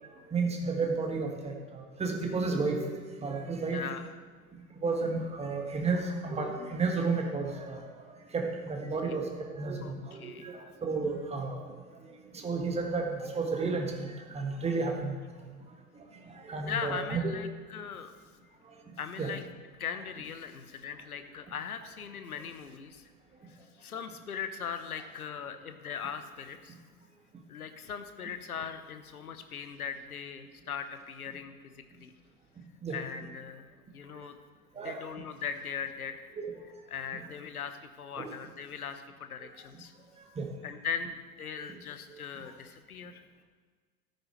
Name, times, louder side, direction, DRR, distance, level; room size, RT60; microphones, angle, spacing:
voice 1, 0.3-3.8 4.7-9.3 9.5-11.7 12.3-15.1 16.3-17.2 19.2-19.3 32.8-33.0 34.8-35.1 36.4-36.5 37.1-37.2 38.2-38.3 40.4-40.5 41.6-41.7, right 4 dB, 15° right, 2 dB, 1.5 m, -32 dB
voice 2, 3.7-4.1 9.0-9.2 9.8-9.9 10.2-10.5 16.7-18.1 19.0-19.4 19.8-23.1 23.5-26.7 27.5-31.5 31.9-32.1 32.9-34.4 34.8-36.2 36.9-39.9 40.6-43.2, left 7 dB, 70° left, 9 dB, 1.0 m, -39 dB
13.5 x 9.6 x 3.1 m, 1.5 s
figure-of-eight pair, 85°, 45 cm